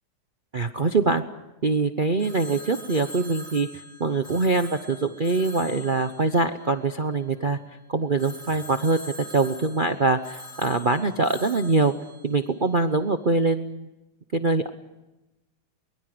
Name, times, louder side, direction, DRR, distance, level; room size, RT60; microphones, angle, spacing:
voice 1, 0.5-1.2 1.6-7.6 7.9-9.0 9.3-11.9 12.2-13.9 14.3-14.7, right 3 dB, 55° right, 8 dB, 0.5 m, -23 dB
Telephone, 2.2-7.4 8.2-13.1, equal, 20° left, 4.6 m, -44 dB
23.0 x 23.0 x 7.8 m, 1.0 s
omnidirectional pair, 2.3 m